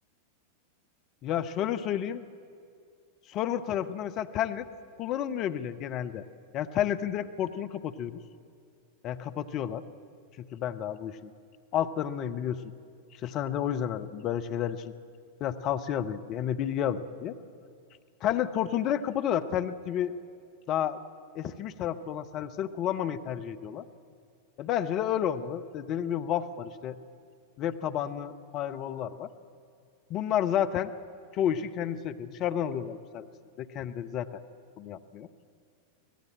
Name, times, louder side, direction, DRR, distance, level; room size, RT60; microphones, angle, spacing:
voice 1, 1.2-2.2 3.3-4.7 5.0-6.2 6.5-8.2 9.0-9.8 10.4-11.3 11.7-12.6 13.2-14.9 15.4-17.3 18.2-20.1 20.7-21.0 21.3-23.8 24.6-27.0 27.6-29.3 30.1-30.9 31.3-33.3 33.6-34.4 34.8-35.3, left 10 dB, 35° left, 9 dB, 0.9 m, -31 dB
25.0 x 17.5 x 8.7 m, 2.3 s
figure-of-eight pair, 90°, 0 cm